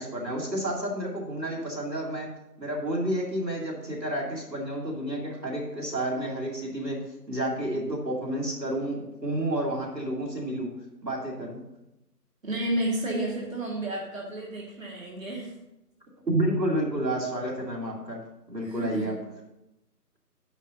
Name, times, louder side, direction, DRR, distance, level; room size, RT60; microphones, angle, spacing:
voice 1, 0.0-2.3 2.6-7.0 7.3-10.7 11.0-11.6 16.3-18.2 18.5-19.2, right 1 dB, 90° right, -2 dB, 3.0 m, -30 dB
voice 2, 12.4-15.5 18.6-19.1, right 1 dB, 55° right, -2 dB, 2.1 m, -31 dB
10.5 x 10.0 x 2.7 m, 0.90 s
figure-of-eight pair, 160°, 49 cm